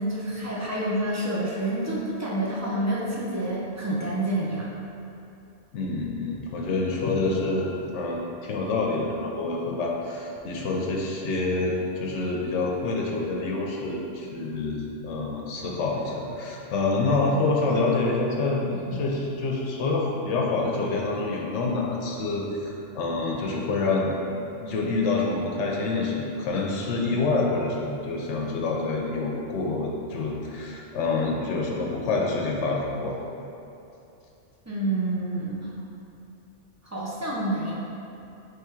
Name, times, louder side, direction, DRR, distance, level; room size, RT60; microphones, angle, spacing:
voice 1, 0.0-4.7 34.7-35.7 36.8-37.7, right 1 dB, 20° right, -6 dB, 0.5 m, -28 dB
voice 2, 5.7-24.1 24.6-33.2, left 3 dB, 85° left, -2 dB, 0.9 m, -27 dB
3.5 x 3.5 x 4.4 m, 2.8 s
omnidirectional pair, 1.2 m